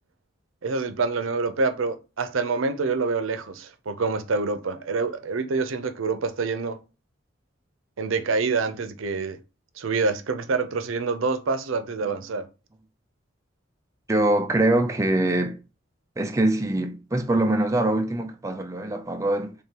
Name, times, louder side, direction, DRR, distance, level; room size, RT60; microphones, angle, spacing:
voice 1, 0.6-6.8 8.0-9.4 9.8-12.5, right 4 dB, 90° right, 0.5 m, -26 dB
voice 2, 14.1-15.6 16.2-19.5, right 1 dB, 15° right, 0.4 m, -23 dB
3.7 x 3.6 x 2.8 m
head